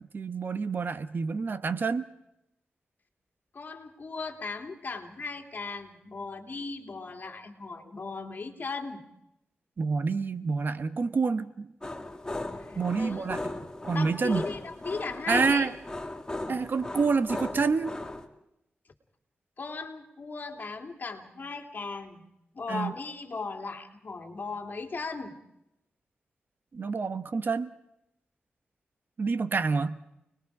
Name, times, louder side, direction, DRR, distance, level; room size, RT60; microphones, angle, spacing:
voice 1, 0.0-2.1 9.8-11.7 12.8-13.4 13.8-14.5 15.3-15.7 16.5-18.0 22.7-22.9 26.7-27.7 29.2-30.0, right 4 dB, 55° right, 12 dB, 1.1 m, -28 dB
voice 2, 3.5-9.0 12.5-13.3 13.9-15.7 19.6-22.3 22.5-25.4, left 4 dB, 50° left, 3 dB, 2.8 m, -37 dB
sound 1, 11.8-18.3, left 2 dB, 15° left, 2.1 m, -37 dB
29.5 x 20.5 x 4.9 m, 0.84 s
wide cardioid pair, 85°, 4 cm